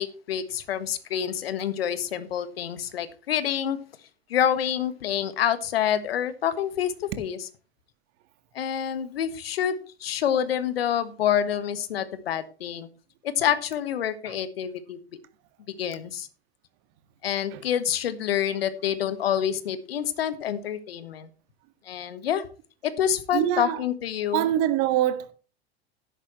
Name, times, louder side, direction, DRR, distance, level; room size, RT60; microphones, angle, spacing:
voice 1, 0.0-3.8 4.3-7.5 8.6-12.9 13.2-15.0 15.8-16.3 17.2-21.3 21.9-22.4 23.0-24.5, left 9 dB, 70° left, 1.6 m, -27 dB
voice 2, 23.3-23.8 24.3-25.3, right 13 dB, 45° right, 1.7 m, -24 dB
13.0 x 11.0 x 3.1 m
figure-of-eight pair, 90°, 32 cm